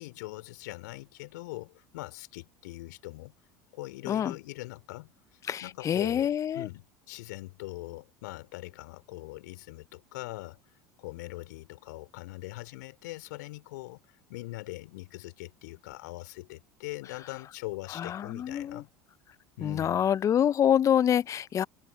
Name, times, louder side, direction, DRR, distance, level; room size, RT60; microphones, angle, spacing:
voice 1, 0.0-3.3 3.7-10.6 11.0-14.0 14.3-18.9 19.6-20.1, left 21 dB, 70° left, 3.4 m, -42 dB
voice 2, 5.5-6.7 17.9-18.8 19.6-21.7, left 9 dB, 30° left, 0.6 m, -26 dB
hypercardioid pair, 75°, 10 cm